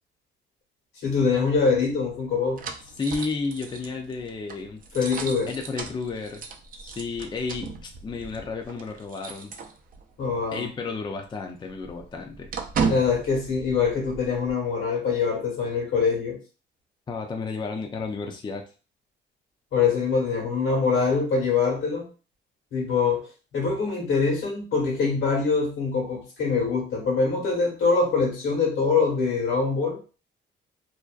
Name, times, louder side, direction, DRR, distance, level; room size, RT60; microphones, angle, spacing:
voice 1, 1.0-2.7 4.9-5.5 10.2-10.7 12.9-16.4 19.7-22.1 22.7-23.3 23.5-30.0, left 5 dB, 80° left, -1 dB, 1.1 m, -24 dB
sound 1, 1.6-10.3 10.6-10.7 11.1-14.5, right 5 dB, 45° right, 0.4 m, -36 dB
voice 2, 3.0-4.8 5.5-6.5 6.8-7.7 8.0-9.5 10.5-12.5 17.1-18.7, left 4 dB, 25° left, 3 dB, 0.4 m, -32 dB
2.6 x 2.2 x 2.3 m, 0.34 s
cardioid pair, 90°, 20 cm